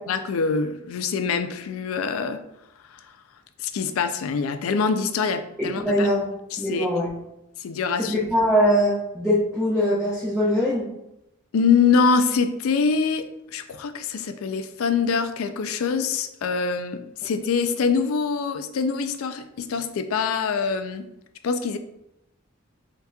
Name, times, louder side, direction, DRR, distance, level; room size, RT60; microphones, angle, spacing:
voice 1, 0.1-2.4 2.9-3.1 3.6-6.1 6.5-6.9 7.6-8.2 11.5-13.2 13.5-21.1 21.4-21.8, left 5 dB, 85° left, 9 dB, 0.4 m, -24 dB
voice 2, 5.6-6.2 6.6-7.1 8.0-10.9, equal, 5° right, -8 dB, 0.7 m, -22 dB
5.7 x 2.8 x 2.3 m, 0.85 s
head